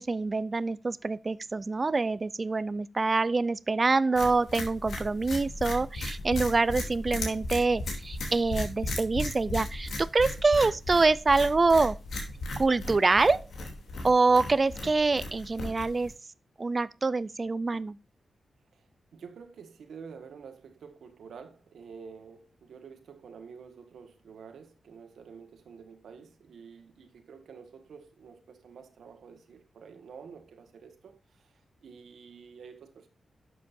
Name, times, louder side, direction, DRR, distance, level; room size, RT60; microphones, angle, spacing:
voice 1, 0.0-12.0 12.6-13.5 14.0-16.1 16.6-18.0, right 3 dB, 25° right, 0.4 m, -25 dB
sound 1, 4.2-16.1, left 2 dB, 75° left, 2.8 m, -36 dB
voice 2, 18.7-33.1, right 6 dB, 90° right, 1.5 m, -49 dB
11.5 x 7.6 x 2.6 m
wide cardioid pair, 175°, 0 cm